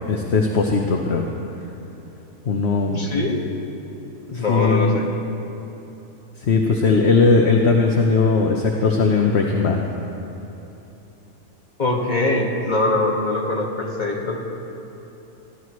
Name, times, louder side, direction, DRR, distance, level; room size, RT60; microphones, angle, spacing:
voice 1, 0.1-1.3 2.5-3.0 4.3-5.0 6.4-9.8, left 4 dB, 50° left, 1 dB, 1.1 m, -18 dB
voice 2, 2.9-3.4 4.3-5.1 11.8-14.4, left 2 dB, 30° left, -2 dB, 1.9 m, -22 dB
23.0 x 15.5 x 3.2 m, 3.0 s
omnidirectional pair, 1.6 m